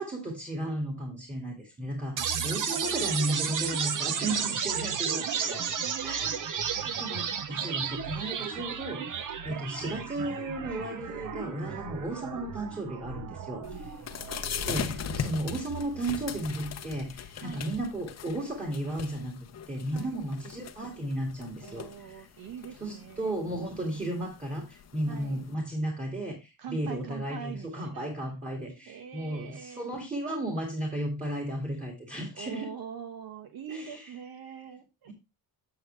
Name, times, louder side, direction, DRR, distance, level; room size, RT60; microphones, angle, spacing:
voice 1, 0.0-5.6 6.0-6.4 6.6-14.0 14.7-19.4 19.7-22.3 22.8-32.7 33.7-34.0 35.1-35.2, right 1 dB, 20° right, 1 dB, 2.2 m, -34 dB
sound 1, 2.2-16.2, right 7 dB, 55° right, 0.9 m, -34 dB
voice 2, 4.7-6.9 9.5-9.7 14.3-14.4 15.2-15.9 17.4-17.7 19.9-20.3 21.6-23.3 23.6-24.1 25.1-25.4 26.6-28.1 28.9-29.9 32.3-35.1, right 7 dB, 75° right, 7 dB, 1.3 m, -44 dB
sound 2, 13.6-25.5, left 8 dB, 45° left, 0.8 m, -40 dB
7.9 x 7.9 x 3.2 m, 0.24 s
cardioid pair, 140°, 36 cm